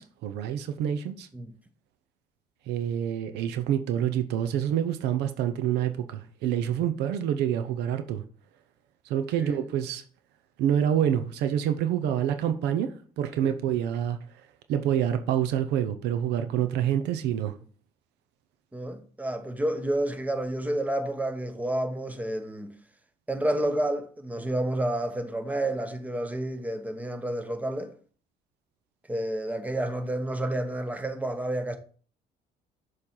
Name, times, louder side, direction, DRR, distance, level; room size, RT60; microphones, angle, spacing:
voice 1, 0.0-1.3 2.7-8.2 9.0-10.0 10.6-17.6, right 10 dB, 85° right, 0.7 m, -27 dB
voice 2, 18.7-22.7 23.3-27.9 29.1-31.8, right 1 dB, 10° right, 0.9 m, -30 dB
6.8 x 3.3 x 5.6 m
cardioid pair, 110°, 17 cm